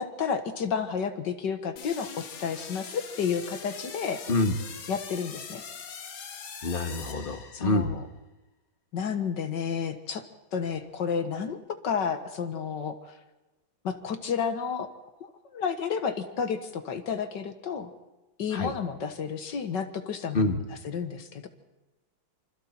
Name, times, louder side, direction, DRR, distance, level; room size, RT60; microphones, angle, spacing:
voice 1, 0.0-4.2 4.9-5.6 7.5-8.0 8.9-10.2 10.5-11.6 11.8-13.0 13.8-14.9 15.2-17.9 18.4-20.6 20.8-21.5, left 6 dB, 65° left, 8 dB, 1.9 m, -31 dB
sound 1, 1.8-8.0, left 6 dB, 85° left, 2.3 m, -42 dB
voice 2, 6.6-7.9 18.5-18.7 20.3-20.6, left 2 dB, 30° left, 6 dB, 1.5 m, -26 dB
26.5 x 25.5 x 4.4 m, 1.1 s
omnidirectional pair, 2.2 m